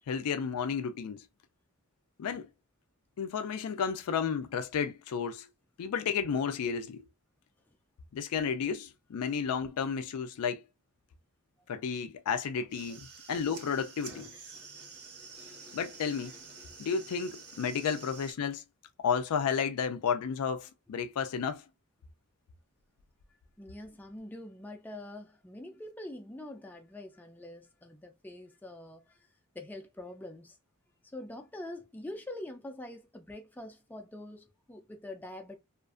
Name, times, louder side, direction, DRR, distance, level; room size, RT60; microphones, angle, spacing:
voice 1, 0.1-1.2 2.2-2.5 3.2-5.5 5.8-7.0 8.1-10.6 11.7-14.3 15.7-16.3 16.8-18.6 19.0-21.6, left 6 dB, 80° left, 0.4 m, -32 dB
sound 1, 12.6-18.3, right 4 dB, 75° right, 1.0 m, -49 dB
voice 2, 23.6-29.3 29.5-30.6 31.1-35.6, left 1 dB, 10° left, 0.3 m, -45 dB
2.5 x 2.4 x 2.4 m
head